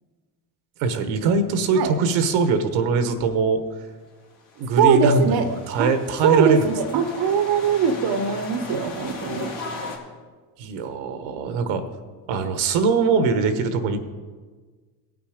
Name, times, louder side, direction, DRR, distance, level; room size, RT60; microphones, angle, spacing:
voice 1, 0.8-3.6 4.6-6.7 10.6-11.8 12.3-14.0, right 4 dB, 75° right, 9 dB, 1.2 m, -22 dB
sound 1, 4.4-10.0, left 3 dB, 80° left, 2.4 m, -37 dB
voice 2, 4.8-5.5 5.8-5.9 6.2-9.5, right 6 dB, 50° right, 9 dB, 1.0 m, -21 dB
17.0 x 6.1 x 5.0 m, 1.4 s
supercardioid pair, 85°, 48 cm